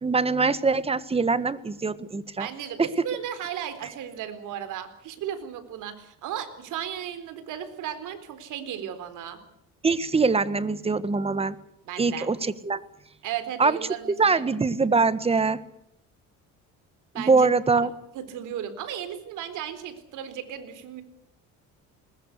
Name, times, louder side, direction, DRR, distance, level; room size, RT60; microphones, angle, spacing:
voice 1, 0.0-2.5 2.8-2.9 9.8-11.6 12.0-12.8 13.6-13.8 14.2-15.6 17.1-17.9, right 4 dB, 20° right, 15 dB, 1.5 m, -23 dB
voice 2, 2.4-9.4 11.9-12.3 13.2-14.4 17.1-17.5 18.1-21.0, right 10 dB, 65° right, 10 dB, 4.1 m, -35 dB
21.0 x 20.5 x 8.3 m, 0.77 s
cardioid pair, 110°, 33 cm